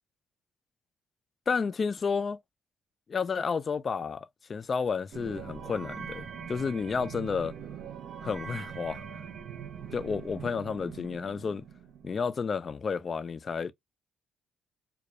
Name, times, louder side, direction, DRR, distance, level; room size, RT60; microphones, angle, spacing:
voice 1, 1.5-2.4 3.1-7.5 8.2-9.0 9.9-11.6 12.0-13.7, left 5 dB, 40° left, 0.3 m, -31 dB
sound 1, 5.1-12.3, right 7 dB, 75° right, 0.5 m, -42 dB
2.3 x 2.0 x 2.7 m
cardioid pair, 90°, 0 cm